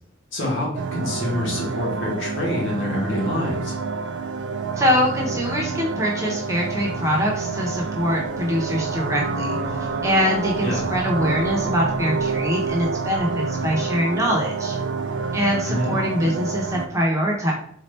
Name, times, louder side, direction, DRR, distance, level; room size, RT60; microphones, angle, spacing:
voice 1, 0.3-3.7 10.6-10.9 15.6-16.0, left 1 dB, 85° left, -3 dB, 1.4 m, -26 dB
sound 1, 0.8-16.9, right 4 dB, 65° right, 0.4 m, -28 dB
voice 2, 4.8-9.6 10.0-14.8 15.3-17.5, equal, 15° right, -2 dB, 0.9 m, -23 dB
4.2 x 2.4 x 3.3 m, 0.64 s
head